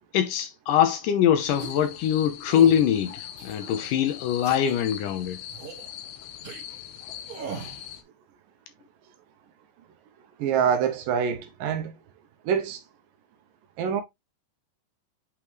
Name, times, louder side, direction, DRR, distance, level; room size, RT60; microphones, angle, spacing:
voice 1, 0.1-5.4 7.5-7.8, left 9 dB, 75° left, 2.1 m, -23 dB
sound 1, 1.4-8.0, left 10 dB, 90° left, 2.8 m, -41 dB
sound 2, 1.6-1.9 2.5-2.8 3.4-3.9 4.4-4.8 5.5-5.9 6.4-6.6 7.3-7.7, right 6 dB, 45° right, 1.1 m, -39 dB
voice 2, 10.4-11.9 12.5-12.8 13.8-14.0, right 7 dB, 75° right, 2.3 m, -25 dB
8.6 x 3.6 x 3.0 m
omnidirectional pair, 4.2 m